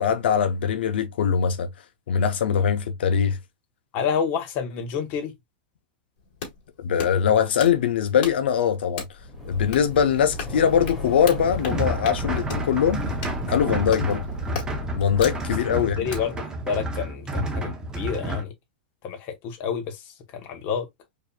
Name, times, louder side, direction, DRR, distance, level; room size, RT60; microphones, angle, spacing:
voice 1, 0.0-1.7 2.1-3.4 6.8-9.0 9.5-13.0 13.5-14.2 14.9-16.1, left 8 dB, 90° left, 0.7 m, -22 dB
voice 2, 3.9-5.3 15.8-18.5 19.0-20.9, left 6 dB, 35° left, 1.0 m, -29 dB
sound 1, 6.2-16.3, left 6 dB, 55° left, 2.0 m, -39 dB
sound 2, 9.2-16.2, left 1 dB, 5° left, 1.7 m, -34 dB
sound 3, 11.4-18.4, right 1 dB, 10° right, 0.7 m, -30 dB
4.9 x 2.7 x 2.2 m
supercardioid pair, 155°, 6 cm